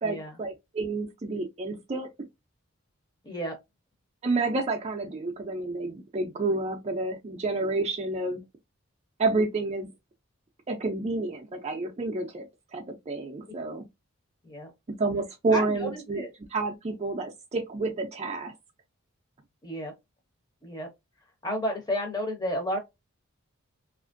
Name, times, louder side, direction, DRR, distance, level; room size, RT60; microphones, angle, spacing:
voice 1, 0.0-2.1 4.2-8.4 9.2-9.9 10.7-12.5 12.7-13.9 15.0-18.5, right 3 dB, 30° right, 0.4 m, -29 dB
voice 2, 3.2-3.5 13.7-13.8 14.5-14.7 15.5-16.3 19.6-19.9 20.6-20.9 21.4-22.8, equal, 20° left, 0.7 m, -32 dB
2.8 x 2.5 x 2.5 m
head